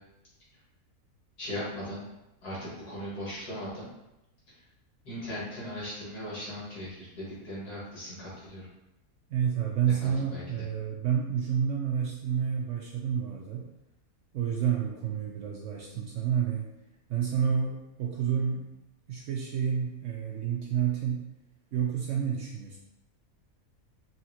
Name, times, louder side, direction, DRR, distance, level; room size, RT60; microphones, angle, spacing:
voice 1, 1.4-2.0 2.4-3.9 4.5-4.6 5.0-8.7 10.0-10.6, equal, 80° left, -7 dB, 2.4 m, -38 dB
voice 2, 9.3-13.7 14.3-16.7 17.1-18.7 19.1-21.3 21.7-22.8, right 8 dB, 70° right, 0 dB, 0.7 m, -29 dB
5.6 x 2.8 x 2.9 m, 0.91 s
omnidirectional pair, 1.7 m